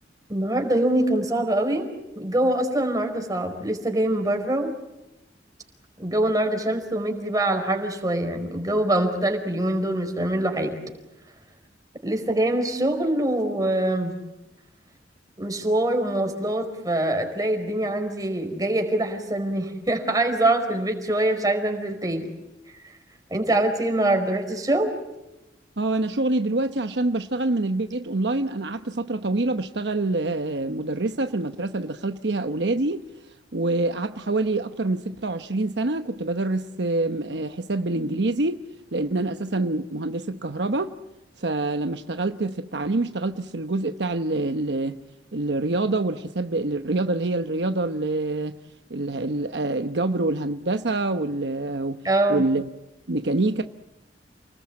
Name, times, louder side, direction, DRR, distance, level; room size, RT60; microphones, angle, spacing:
voice 1, 0.3-4.7 6.0-10.8 12.0-14.1 15.4-22.3 23.3-25.0 52.0-52.4, right 1 dB, 20° right, 4.8 m, -24 dB
voice 2, 25.8-33.0 33.5-38.6 38.9-41.0 41.4-45.0 45.3-48.6 48.9-52.7 53.1-53.6, right 2 dB, 70° right, 1.0 m, -26 dB
30.0 x 20.0 x 8.7 m
head